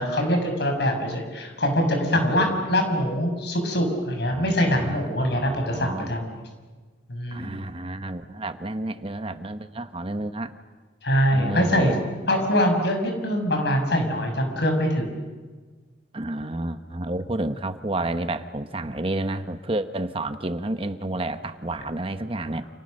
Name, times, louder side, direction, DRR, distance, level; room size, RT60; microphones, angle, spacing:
voice 1, 0.0-6.3 7.1-7.6 11.0-12.0 12.3-15.2, equal, 65° left, 4 dB, 6.5 m, -23 dB
voice 2, 4.3-6.1 7.3-10.5 11.3-12.0 16.1-22.7, right 2 dB, 30° right, 9 dB, 1.1 m, -30 dB
30.0 x 28.5 x 6.6 m, 1.4 s
head